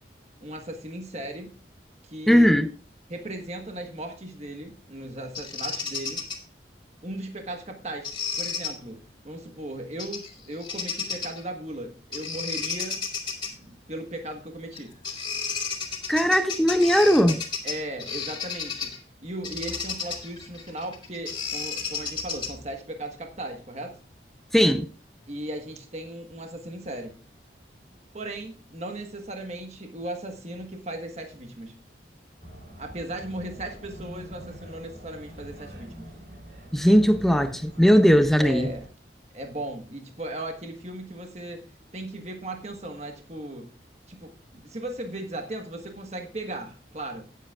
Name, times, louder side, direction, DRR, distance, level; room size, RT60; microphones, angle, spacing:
voice 1, 0.4-1.5 2.0-2.5 3.1-6.2 7.0-8.1 8.4-13.0 13.6-15.0 17.6-19.0 19.2-24.0 25.3-27.2 28.1-31.8 32.8-36.1 38.4-38.8 39.3-41.6 41.9-43.7 44.1-47.3, right 1 dB, 35° right, 1.3 m, -37 dB
voice 2, 2.3-2.7 16.1-17.4 24.5-24.9 36.7-38.7, equal, ahead, 0.5 m, -19 dB
Bird vocalization bird call bird song, 5.3-6.4 8.0-8.7 10.0-10.3 10.6-11.4 12.1-13.5 14.7-14.8 15.0-19.0 19.4-22.7, left 5 dB, 25° left, 2.3 m, -32 dB
sound 1, 32.4-38.9, equal, 60° right, 3.6 m, -45 dB
17.5 x 7.7 x 2.4 m
head